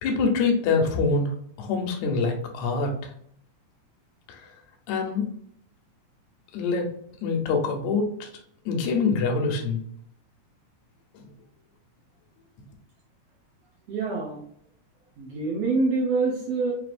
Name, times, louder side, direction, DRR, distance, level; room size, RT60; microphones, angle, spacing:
voice 1, 0.0-3.0 4.3-4.4 4.9-5.3 6.5-6.9 7.2-8.3 8.7-9.8, left 4 dB, 70° left, 1 dB, 1.9 m, -25 dB
voice 2, 13.9-14.4 15.2-16.7, right 3 dB, 70° right, -3 dB, 1.5 m, -25 dB
5.8 x 2.7 x 2.5 m, 0.65 s
omnidirectional pair, 4.0 m